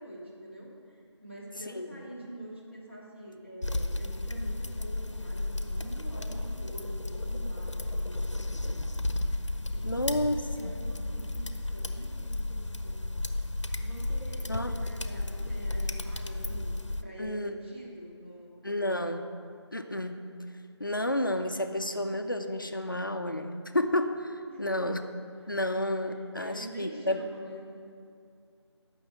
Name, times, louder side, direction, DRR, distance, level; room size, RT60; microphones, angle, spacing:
voice 1, 0.0-8.9 9.2-9.4 9.7-13.1 13.7-19.2 24.5-24.9 25.9-27.9, right 1 dB, 25° right, -5 dB, 1.5 m, -46 dB
voice 2, 1.7-2.0 9.8-10.7 14.5-14.7 17.2-17.5 18.6-19.3 19.7-20.3 20.8-25.0 25.5-27.2, left 1 dB, 45° left, 6 dB, 0.5 m, -31 dB
sound 1, 3.6-17.0, left 2 dB, 80° left, 0.7 m, -33 dB
7.8 x 6.1 x 7.8 m, 2.4 s
figure-of-eight pair, 175°, 15 cm